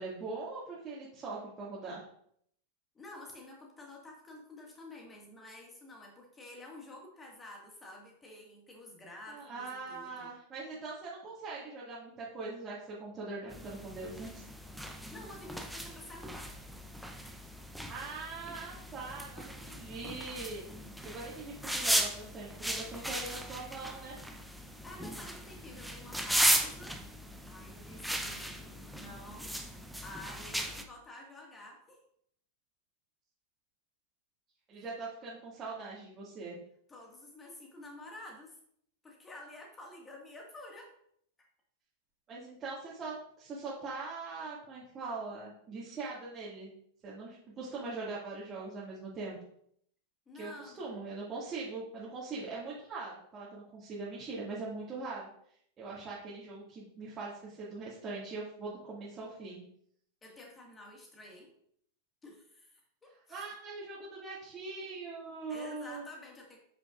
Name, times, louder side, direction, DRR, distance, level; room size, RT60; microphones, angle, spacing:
voice 1, 0.0-2.0 9.3-14.4 17.9-20.7 21.0-24.2 34.7-36.6 42.3-46.7 47.0-49.4 50.3-55.3 55.8-59.6 63.3-66.0, right 3 dB, 25° right, -7 dB, 2.1 m, -42 dB
voice 2, 2.9-10.3 14.9-16.5 24.8-27.0 27.4-28.6 28.9-29.5 30.0-32.0 34.7-34.8 36.9-38.6 39.0-40.9 50.3-50.9 60.2-61.5 62.2-63.4 65.5-66.6, left 1 dB, 15° left, 0 dB, 1.9 m, -50 dB
sound 1, 13.5-30.8, right 1 dB, ahead, 0.7 m, -36 dB
8.2 x 6.2 x 2.5 m, 0.68 s
figure-of-eight pair, 90°, 0 cm